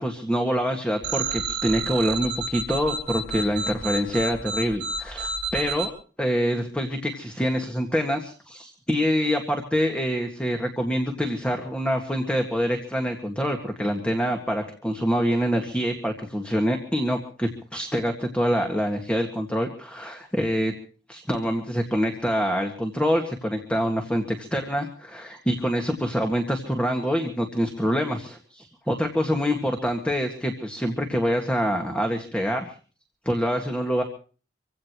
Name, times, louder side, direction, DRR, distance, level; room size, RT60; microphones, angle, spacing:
voice 1, 0.0-5.9 6.2-20.7 21.1-32.7 33.3-34.0, equal, 5° left, 3 dB, 1.9 m, -26 dB
sound 1, 1.0-5.9, right 4 dB, 70° right, 5.0 m, -30 dB
26.0 x 16.5 x 3.1 m, 0.41 s
head